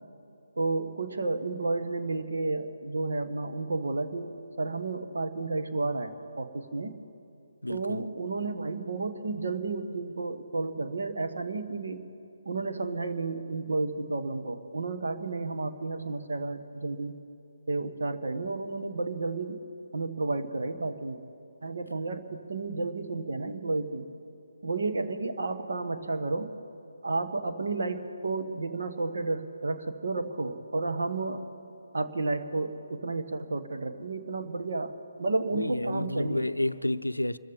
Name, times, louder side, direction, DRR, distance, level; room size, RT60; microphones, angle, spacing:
voice 1, 0.6-7.0 7.7-12.0 12.4-17.1 17.7-19.6 19.9-21.2 21.6-24.1 24.6-26.6 27.0-31.4 31.9-36.4, right 3 dB, 60° right, 1.3 m, -32 dB
voice 2, 7.6-8.0 35.5-37.4, left 1 dB, 85° left, 0.5 m, -30 dB
26.5 x 14.5 x 3.6 m
figure-of-eight pair, 145°, 0 cm